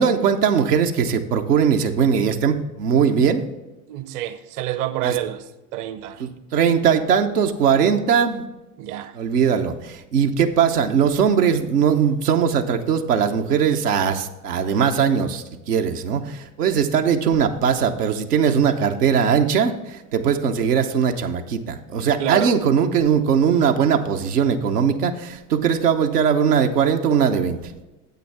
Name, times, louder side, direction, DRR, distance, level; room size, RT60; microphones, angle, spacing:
voice 1, 0.0-3.4 5.0-5.2 6.2-8.4 9.1-27.7, right 7 dB, 85° right, 0.9 m, -20 dB
voice 2, 3.9-5.4 5.7-6.2 8.8-9.2 22.2-22.5, right 13 dB, 45° right, 0.7 m, -27 dB
9.2 x 8.0 x 3.4 m
hypercardioid pair, 75°, 46 cm